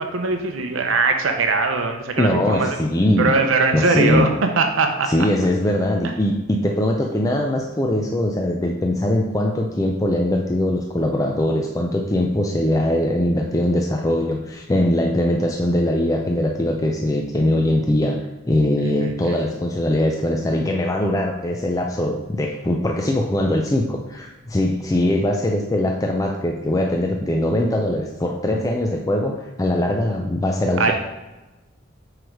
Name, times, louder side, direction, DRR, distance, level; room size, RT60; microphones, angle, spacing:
voice 1, 0.0-2.7 3.2-5.1 18.8-18.9 19.3-19.4 30.8-30.9, right 3 dB, 75° right, 4 dB, 0.7 m, -20 dB
voice 2, 2.2-3.4 3.7-4.3 5.1-18.2 18.5-30.9, left 1 dB, 15° left, 1 dB, 0.4 m, -21 dB
6.1 x 4.9 x 4.6 m, 1.1 s
head